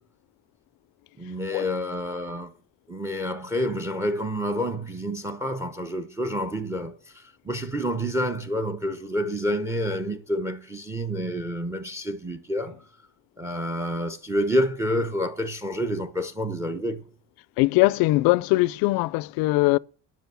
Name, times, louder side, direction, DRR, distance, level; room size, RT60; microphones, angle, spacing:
voice 1, 1.2-2.5 2.9-12.9 13.4-17.0, equal, 10° right, 0.8 m, -28 dB
voice 2, 17.6-19.8, left 21 dB, 85° left, 0.5 m, -21 dB
10.5 x 6.2 x 6.9 m
cardioid pair, 155°, 35 cm